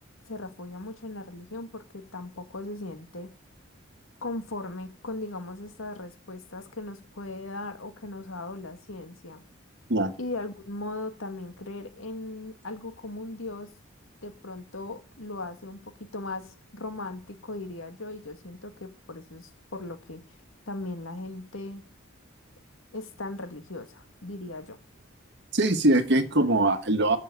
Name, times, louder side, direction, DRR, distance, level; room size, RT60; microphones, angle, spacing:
voice 1, 0.3-3.3 4.2-9.4 10.2-13.7 14.2-15.8 16.1-20.2 20.7-21.8 22.9-24.8, left 2 dB, 75° left, 2.0 m, -38 dB
voice 2, 25.5-27.2, right 2 dB, 55° right, 1.6 m, -22 dB
14.5 x 6.5 x 9.4 m
head